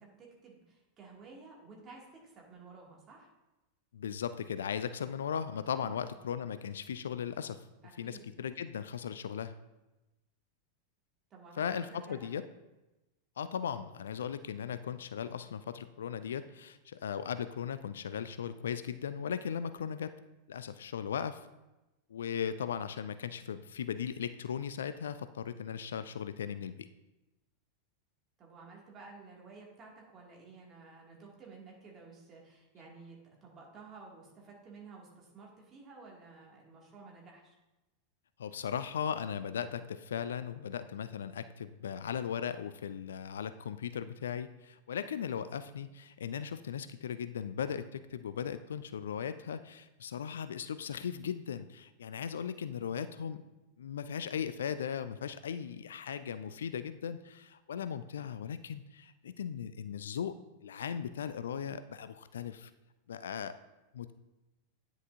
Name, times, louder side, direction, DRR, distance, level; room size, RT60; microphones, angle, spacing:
voice 1, 0.0-3.3 5.8-6.0 7.8-8.3 11.3-12.3 28.4-37.5, right 4 dB, 30° right, -3 dB, 2.2 m, -53 dB
voice 2, 3.9-7.6 8.0-9.5 11.6-12.4 13.4-20.2 20.5-21.5 22.1-26.7 38.4-53.4 53.8-60.3 60.6-62.7 63.1-63.6 63.9-64.1, left 8 dB, 65° left, 12 dB, 0.3 m, -37 dB
9.8 x 6.1 x 2.6 m, 1.0 s
figure-of-eight pair, 90°, 0 cm